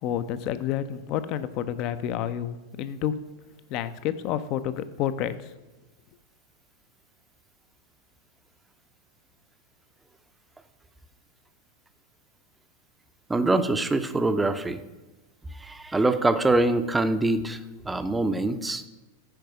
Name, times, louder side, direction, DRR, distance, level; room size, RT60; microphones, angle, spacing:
voice 1, 0.0-3.2 3.7-5.3, left 10 dB, 40° left, 13 dB, 0.5 m, -29 dB
voice 2, 13.3-14.8 15.5-17.6 17.8-18.8, right 2 dB, 10° right, 10 dB, 0.5 m, -24 dB
9.1 x 4.8 x 5.8 m, 1.1 s
figure-of-eight pair, 90°, 0 cm